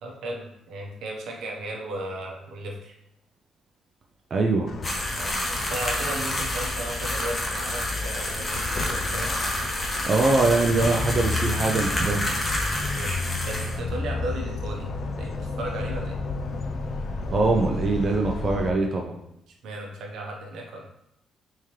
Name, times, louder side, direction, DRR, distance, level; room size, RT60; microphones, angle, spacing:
voice 1, 0.0-2.9 5.2-9.6 12.7-13.1 13.5-14.9 15.2-16.2 19.6-20.8, right 1 dB, 80° right, 0 dB, 0.8 m, -35 dB
voice 2, 4.3-4.7 10.0-12.3 17.3-19.1, right 3 dB, 45° right, 1 dB, 0.4 m, -23 dB
sound 1, 4.7-18.7, left 3 dB, 55° left, 0.4 m, -32 dB
sound 2, 4.8-13.8, left 1 dB, 30° left, 0.9 m, -29 dB
3.6 x 2.9 x 3.1 m, 0.80 s
cardioid pair, 90°, 0 cm